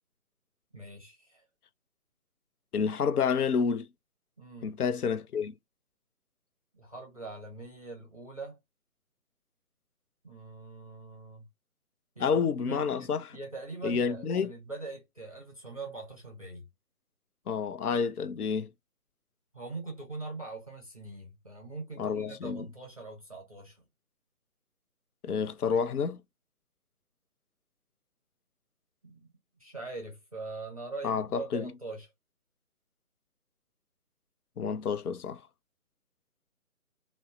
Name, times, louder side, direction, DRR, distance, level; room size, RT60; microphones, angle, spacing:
voice 1, 0.7-1.4 4.4-4.7 6.7-8.6 10.2-11.5 12.2-16.7 19.5-23.8 29.0-29.3 29.6-32.1, right 3 dB, 25° right, 0.5 m, -42 dB
voice 2, 2.7-3.9 4.6-5.5 12.2-13.2 13.8-14.5 17.5-18.7 22.0-22.7 25.2-26.2 31.0-31.7 34.6-35.4, left 6 dB, 85° left, 0.5 m, -29 dB
2.9 x 2.0 x 2.4 m
figure-of-eight pair, 150°, 44 cm